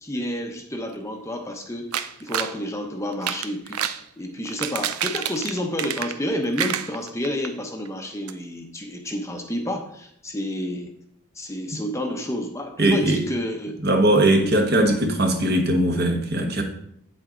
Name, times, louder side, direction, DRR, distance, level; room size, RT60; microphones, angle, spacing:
voice 1, 0.0-10.9 11.3-13.7 14.3-14.5, left 1 dB, 15° left, 3 dB, 0.8 m, -30 dB
sound 1, 1.9-2.6 3.1-4.0 4.5-6.3 6.6-7.5 7.9-8.0 8.3-8.4, right 9 dB, 90° right, 0.6 m, -28 dB
voice 2, 12.8-13.2 13.8-16.6, right 1 dB, 45° right, 3 dB, 1.3 m, -20 dB
8.7 x 7.8 x 3.9 m, 0.72 s
head